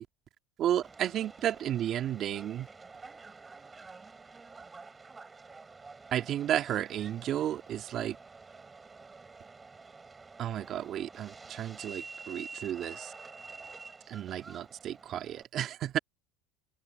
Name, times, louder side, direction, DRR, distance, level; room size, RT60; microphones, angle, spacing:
voice 1, 0.6-2.7 6.1-8.2 10.4-13.1 14.1-16.0, right 11 dB, 50° right, 2.2 m, -32 dB
Subway metro underground, 0.8-15.4, right 4 dB, 20° right, 7.7 m, -49 dB
supercardioid pair, 100°, 0 cm